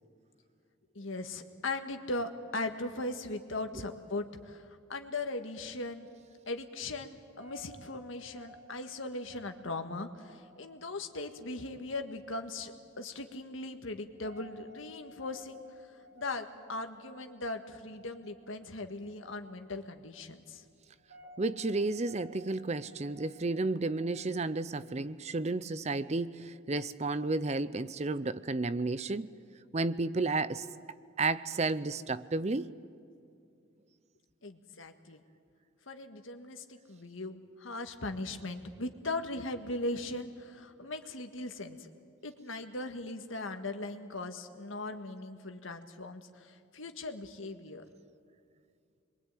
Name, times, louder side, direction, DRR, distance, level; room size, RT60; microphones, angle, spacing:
voice 1, 1.0-6.1 6.5-15.6 16.2-20.6 34.4-35.2 35.9-41.9 42.2-47.8, left 2 dB, 75° left, 1.8 m, -39 dB
sound 1, 5.2-24.8, equal, 60° right, 6.7 m, -58 dB
voice 2, 21.4-29.3 29.7-30.7 31.2-32.7, right 3 dB, 35° right, 0.6 m, -32 dB
27.0 x 22.5 x 9.2 m
head